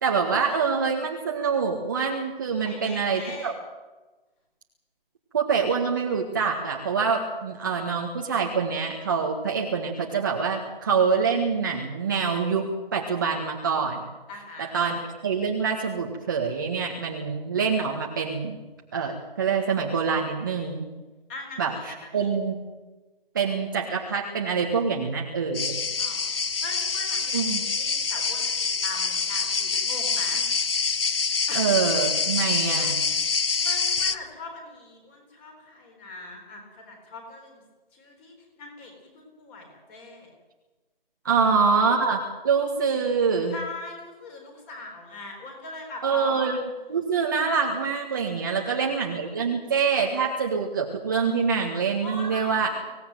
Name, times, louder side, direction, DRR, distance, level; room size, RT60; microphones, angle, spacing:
voice 1, 0.0-3.5 5.3-14.0 14.6-18.6 18.9-20.9 21.6-22.6 23.3-25.8 27.3-27.7 31.5-33.0 41.2-43.6 46.0-46.6 46.9-52.7, right 5 dB, 20° right, 0 dB, 1.7 m, -25 dB
voice 2, 2.6-3.5 14.3-15.0 21.3-22.3 26.0-26.3 26.6-30.4 31.5-31.7 32.3-32.5 32.9-33.1 33.6-37.6 37.9-40.3 41.3-41.6 43.5-46.4 48.3-49.2 52.0-52.9, left 2 dB, 10° left, 3 dB, 3.8 m, -41 dB
sound 1, 25.5-34.2, left 5 dB, 70° left, 1.5 m, -26 dB
25.5 x 17.5 x 9.3 m, 1.2 s
hypercardioid pair, 175°, 29 cm